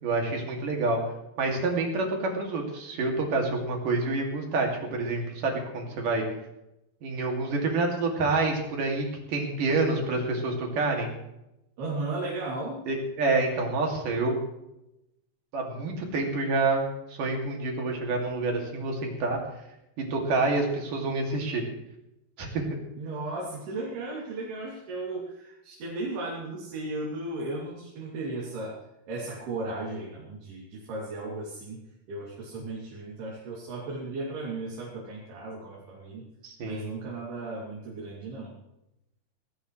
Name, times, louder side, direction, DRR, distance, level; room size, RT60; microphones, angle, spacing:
voice 1, 0.0-1.1 1.4-6.2 7.0-11.1 12.9-14.4 15.5-19.4 20.0-21.6 22.4-22.7 36.4-36.9, right 3 dB, 55° right, 1 dB, 3.9 m, -28 dB
voice 2, 11.8-12.8 23.0-28.8 29.1-31.8 32.1-36.3 36.6-38.5, right 2 dB, 75° right, -4 dB, 4.9 m, -35 dB
18.5 x 16.5 x 3.2 m, 0.87 s
omnidirectional pair, 4.7 m